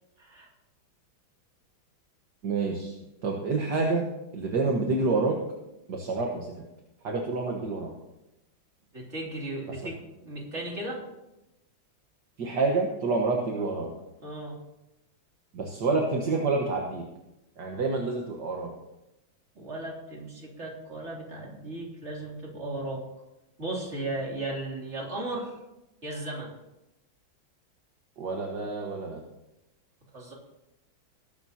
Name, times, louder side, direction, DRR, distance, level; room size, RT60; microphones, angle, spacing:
voice 1, 0.2-0.5 8.9-11.0 14.2-14.6 19.5-23.1 23.6-25.6 26.0-26.5 30.1-30.3, right 2 dB, 35° right, -2 dB, 3.4 m, -36 dB
voice 2, 2.4-2.9 3.2-4.1 4.3-5.4 5.9-6.5 7.0-7.9 12.4-13.9 15.5-17.0 17.6-18.7 28.2-29.2, right 3 dB, 60° right, 0 dB, 2.0 m, -28 dB
21.0 x 12.0 x 2.9 m, 0.93 s
omnidirectional pair, 2.2 m